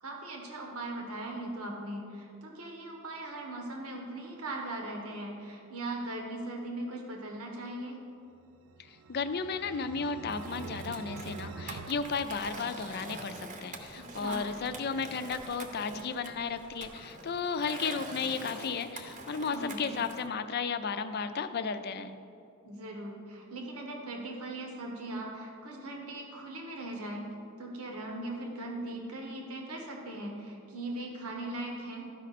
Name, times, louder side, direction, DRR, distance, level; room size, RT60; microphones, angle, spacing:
voice 1, 0.0-8.0 13.9-14.5 19.5-20.0 22.6-27.3 27.6-32.1, right 2 dB, 85° right, 0 dB, 1.4 m, -39 dB
sound 1, 8.5-13.1, right 4 dB, 70° right, 0.4 m, -45 dB
voice 2, 8.8-22.2, left 5 dB, 45° left, 10 dB, 0.4 m, -34 dB
Skateboard, 10.3-20.3, right 2 dB, 35° right, 0.8 m, -45 dB
13.5 x 5.2 x 4.2 m, 2.5 s
head